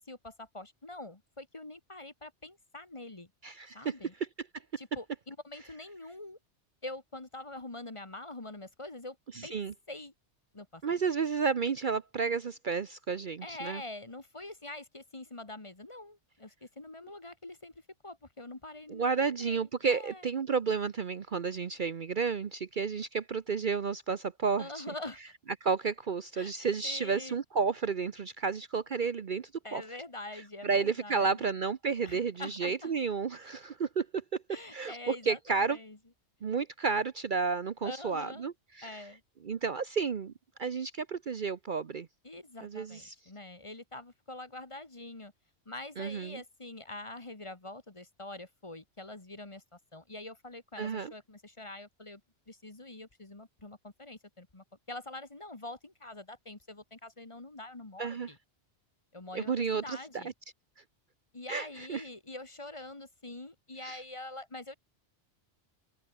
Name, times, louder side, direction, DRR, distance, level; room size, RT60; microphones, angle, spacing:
voice 1, 0.0-3.3 3.7-4.1 4.8-6.4 6.8-9.2 9.4-9.6 9.9-10.1 10.5-10.8 13.4-20.2 24.6-25.2 26.3-26.5 26.8-27.4 29.6-31.5 32.0-32.9 34.5-36.0 37.8-38.5 38.8-39.2 42.2-45.3 45.6-52.2 52.5-58.4 59.1-60.3 61.3-64.8, left 2 dB, 25° left, 1.7 m, -45 dB
voice 2, 3.4-3.9 9.3-9.7 10.8-13.8 18.9-24.8 25.6-29.8 30.6-34.2 34.7-35.8 36.4-39.0 39.4-40.3 40.6-42.1 42.6-43.1 46.0-46.4 50.8-51.1 58.0-58.3 59.3-60.2 61.5-62.0 63.8-64.0, right 5 dB, 50° right, 0.9 m, -32 dB
open air
omnidirectional pair, 1.2 m